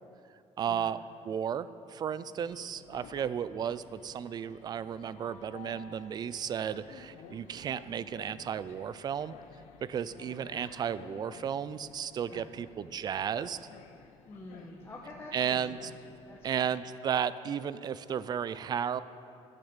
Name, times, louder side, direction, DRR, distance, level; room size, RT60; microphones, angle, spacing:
voice 1, 0.6-9.4 9.8-13.6 15.3-15.9 16.4-19.0, right 8 dB, 35° right, 16 dB, 0.4 m, -34 dB
Train, 2.4-16.8, left 7 dB, 80° left, 0.8 m, -54 dB
voice 2, 10.5-10.8 12.3-12.5 14.3-15.8 16.2-16.7, left 2 dB, 20° left, -1 dB, 1.1 m, -48 dB
10.0 x 10.0 x 8.0 m, 2.6 s
cardioid pair, 155°, 12 cm